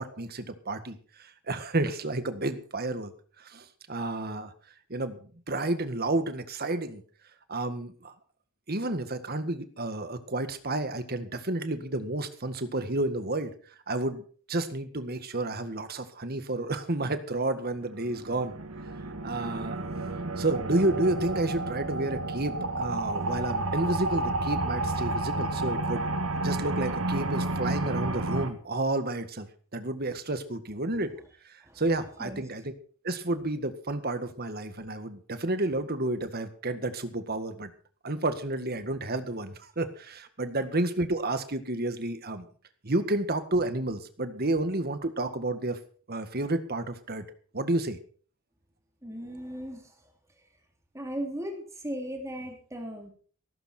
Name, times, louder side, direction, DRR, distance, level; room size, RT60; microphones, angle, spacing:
voice 1, 0.0-3.1 3.4-4.5 4.9-7.0 7.5-8.1 8.7-13.5 13.9-18.6 19.2-19.8 20.4-26.1 26.4-29.5 29.7-31.1 31.4-32.7 33.0-37.7 38.0-42.5 42.8-45.8 46.1-47.2 47.5-48.0, right 2 dB, 45° right, 10 dB, 1.8 m, -31 dB
sound 1, 17.8-28.5, right 2 dB, 75° right, 2.4 m, -31 dB
voice 2, 49.0-50.0 50.9-53.1, equal, 15° right, 2 dB, 3.4 m, -37 dB
17.0 x 15.0 x 4.5 m, 0.43 s
head